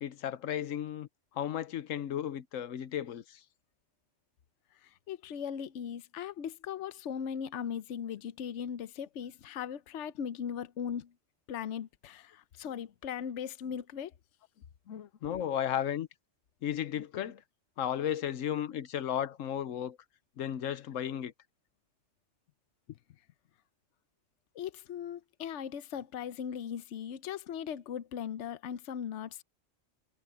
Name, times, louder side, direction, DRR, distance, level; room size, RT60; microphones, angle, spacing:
voice 1, 0.0-1.1 1.3-3.4 12.7-12.8 13.6-13.7 14.9-16.1 16.6-17.4 17.8-20.0 20.4-21.3, left 10 dB, 85° left, 1.1 m, -34 dB
voice 2, 4.8-11.1 11.5-14.1 24.5-29.4, left 8 dB, 70° left, 1.0 m, -38 dB
omnidirectional pair, 1.3 m